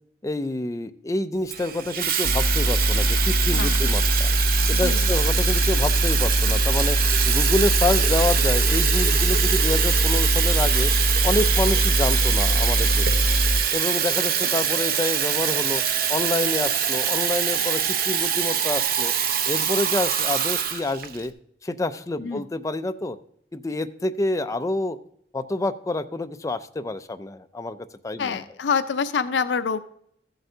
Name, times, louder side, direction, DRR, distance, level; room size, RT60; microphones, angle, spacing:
voice 1, 0.2-4.3 4.7-7.0 7.3-10.9 11.2-13.1 13.7-15.8 16.1-19.1 19.5-21.3 21.6-23.2 23.5-25.0 25.3-27.8 28.0-28.4, left 2 dB, 20° left, 9 dB, 0.4 m, -27 dB
Water tap faucet / Fill (with liquid), 1.5-21.3, right 8 dB, 55° right, 0.6 m, -24 dB
sound 1, 2.2-13.6, equal, 90° left, 1.0 m, -22 dB
voice 2, 28.2-29.8, left 5 dB, 70° left, 11 dB, 0.5 m, -26 dB
14.5 x 7.8 x 2.7 m, 0.68 s
head